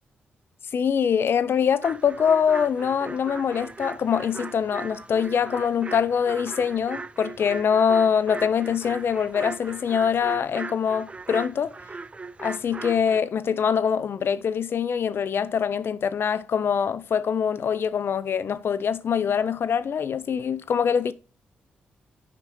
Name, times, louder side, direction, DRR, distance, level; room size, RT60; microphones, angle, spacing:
voice 1, 0.7-11.7 12.4-21.1, left 7 dB, 60° left, 0.5 m, -24 dB
sound 1, 1.8-13.2, right 3 dB, 25° right, 0.4 m, -38 dB
7.6 x 5.1 x 3.2 m
supercardioid pair, 45°, 4 cm